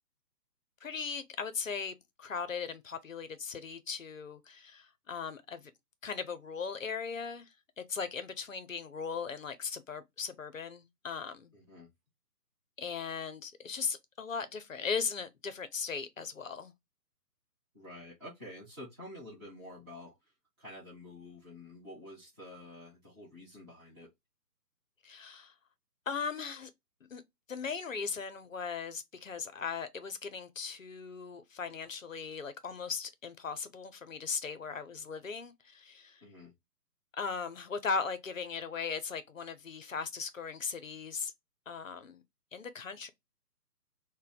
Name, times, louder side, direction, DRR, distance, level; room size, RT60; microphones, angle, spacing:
voice 1, 0.8-5.7 6.0-11.5 12.8-16.7 25.0-25.5 26.1-26.7 27.1-27.2 27.5-36.2 37.1-41.3 41.7-42.2 42.5-43.1, left 5 dB, 55° left, 0.5 m, -38 dB
voice 2, 11.5-11.9 17.7-20.3 20.6-24.1 36.2-36.5, left 1 dB, 15° right, 0.8 m, -49 dB
2.6 x 2.1 x 3.9 m
figure-of-eight pair, 140°, 48 cm